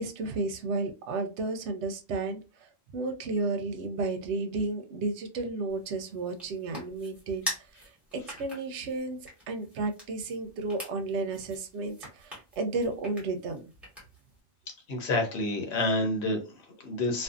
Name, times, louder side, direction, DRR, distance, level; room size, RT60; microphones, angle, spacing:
voice 1, 0.0-13.7, right 3 dB, 80° right, 7 dB, 0.9 m, -33 dB
sound 1, 5.7-14.4, equal, ahead, 1.1 m, -44 dB
voice 2, 14.9-17.2, left 2 dB, 70° left, 3 dB, 1.1 m, -29 dB
2.5 x 2.4 x 2.3 m, 0.31 s
omnidirectional pair, 1.1 m